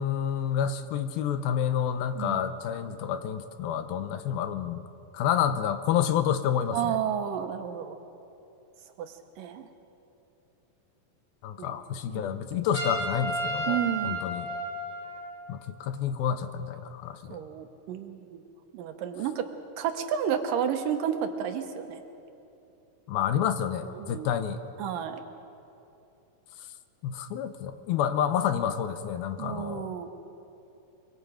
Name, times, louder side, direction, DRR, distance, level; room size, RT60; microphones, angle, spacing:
voice 1, 0.0-4.9 5.1-7.0 11.4-13.8 14.0-14.5 15.5-17.4 23.1-24.6 26.6-26.7 27.0-29.9, left 9 dB, 85° left, 10 dB, 2.7 m, -29 dB
voice 2, 6.7-8.0 9.0-9.7 11.6-11.8 12.1-12.4 13.7-14.2 17.3-18.4 18.7-19.5 19.8-22.0 24.0-24.3 24.8-25.2 29.4-30.1, right 9 dB, 75° right, 6 dB, 2.5 m, -31 dB
Trumpet, 12.7-15.4, right 1 dB, 25° left, 7.7 m, -32 dB
24.0 x 23.5 x 5.0 m, 2.8 s
omnidirectional pair, 4.2 m